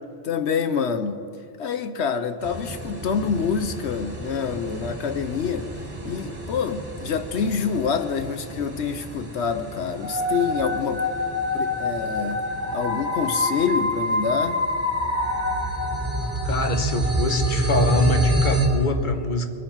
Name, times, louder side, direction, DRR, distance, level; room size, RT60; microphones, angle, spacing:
voice 1, 0.2-1.2 1.6-5.7 6.0-11.0 11.5-12.4 12.7-14.6, left 6 dB, 65° left, 0.9 m, -26 dB
sound 1, 2.4-18.7, right 2 dB, 40° right, 2.4 m, -29 dB
sound 2, 10.0-16.8, left 2 dB, 65° right, 1.4 m, -27 dB
voice 2, 16.4-19.5, left 2 dB, 40° left, 1.2 m, -25 dB
22.0 x 8.9 x 5.6 m
omnidirectional pair, 1.3 m